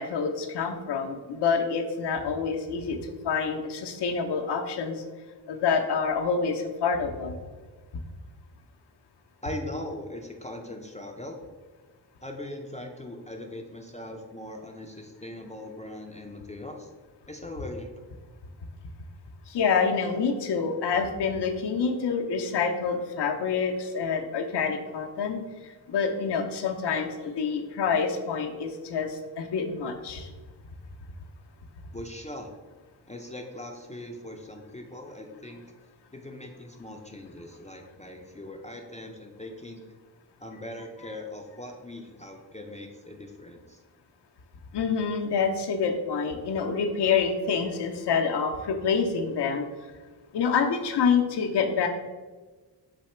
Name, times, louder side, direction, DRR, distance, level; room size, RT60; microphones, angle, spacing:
voice 1, 0.0-3.0 3.2-5.0 5.5-7.4 19.5-25.4 25.9-30.3 44.7-49.7 50.3-51.9, left 5 dB, 65° left, 3 dB, 0.6 m, -27 dB
voice 2, 9.4-11.4 12.2-16.9 17.3-17.9 31.9-32.5 33.1-35.6 36.1-39.8 40.4-43.8, left 1 dB, 15° left, 2 dB, 0.4 m, -40 dB
4.1 x 2.8 x 4.3 m, 1.3 s
cardioid pair, 60°, 44 cm